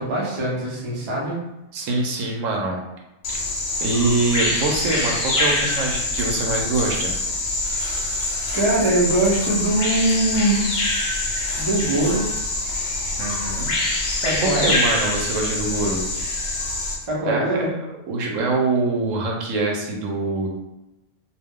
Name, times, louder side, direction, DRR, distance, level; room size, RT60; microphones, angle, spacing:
voice 1, 0.0-1.4 8.5-10.6 11.6-12.3 14.2-14.7 17.1-17.7, right 1 dB, 30° right, -5 dB, 0.6 m, -22 dB
voice 2, 1.7-2.8 3.3-3.4 3.8-7.2 13.2-13.7 14.4-16.1 17.2-17.7 18.1-20.5, right 3 dB, 85° right, 0 dB, 1.0 m, -24 dB
Bird vocalization bird call bird song, 3.2-16.9, left 2 dB, 65° left, 0.9 m, -25 dB
2.4 x 2.2 x 3.5 m, 0.95 s
omnidirectional pair, 1.3 m